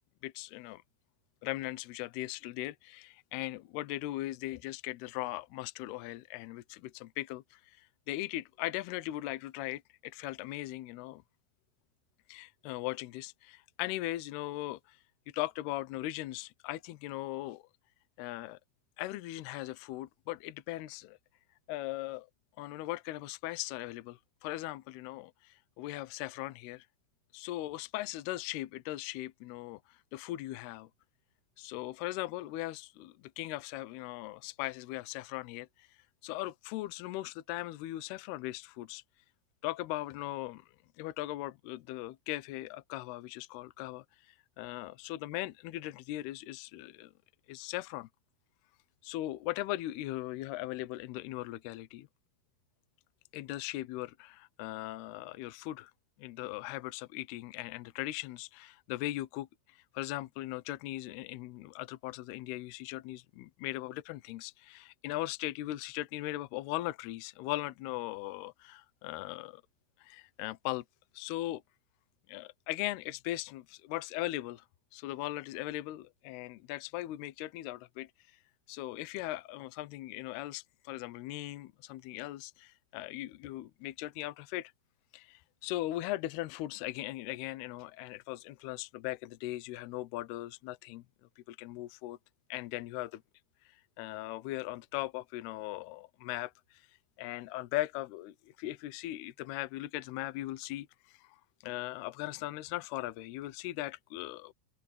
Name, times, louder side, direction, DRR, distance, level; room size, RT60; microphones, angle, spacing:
voice 1, 0.2-0.8 1.4-11.2 12.3-15.0 15.3-17.7 18.2-18.6 19.0-21.2 21.7-22.3 22.6-26.9 27.3-30.9 31.6-35.9 36.2-39.0 39.6-40.7 41.0-44.0 44.6-47.1 47.5-48.1 49.0-52.1 53.3-55.9 56.2-69.6 70.0-70.8 71.1-71.6 72.3-74.6 74.9-78.1 78.7-84.7 85.1-91.0 91.4-92.2 92.5-93.2 94.0-96.8 97.2-101.4 101.6-104.5, left 17 dB, 80° left, 2.3 m, -39 dB
open air
omnidirectional pair, 6.0 m